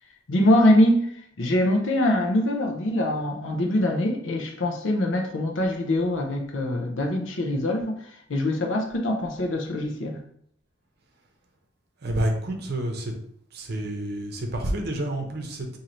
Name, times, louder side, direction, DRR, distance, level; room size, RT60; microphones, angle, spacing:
voice 1, 0.3-1.1 1.4-7.9 8.3-10.2, left 1 dB, 85° left, 3 dB, 0.7 m, -23 dB
voice 2, 12.0-13.1 13.5-15.8, right 1 dB, 55° right, 3 dB, 0.7 m, -29 dB
3.1 x 2.8 x 3.9 m, 0.68 s
head